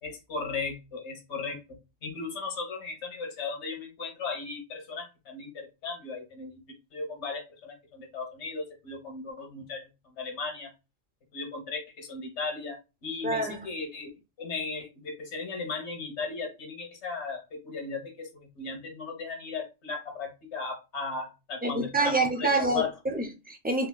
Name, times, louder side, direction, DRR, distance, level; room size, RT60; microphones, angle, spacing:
voice 1, 0.0-9.9 10.2-10.7 11.3-14.1 14.4-22.9, left 4 dB, 65° left, 1.4 m, -36 dB
voice 2, 13.2-13.7 21.6-23.9, right 2 dB, 15° right, 0.3 m, -27 dB
3.8 x 3.0 x 2.2 m
omnidirectional pair, 1.2 m